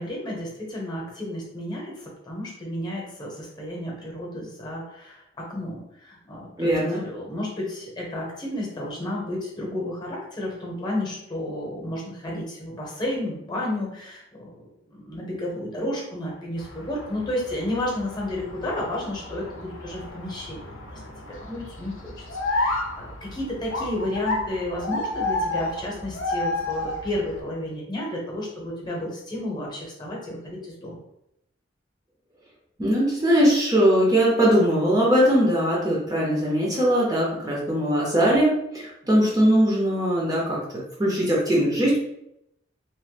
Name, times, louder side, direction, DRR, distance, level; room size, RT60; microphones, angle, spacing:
voice 1, 0.0-14.6 14.9-20.7 20.9-31.0, left 1 dB, 25° left, -3 dB, 0.9 m, -32 dB
voice 2, 6.6-7.0 32.8-42.0, equal, 20° right, -4 dB, 0.6 m, -21 dB
sound 1, 16.6-27.4, left 2 dB, 85° left, 0.7 m, -31 dB
3.0 x 2.1 x 3.2 m, 0.80 s
head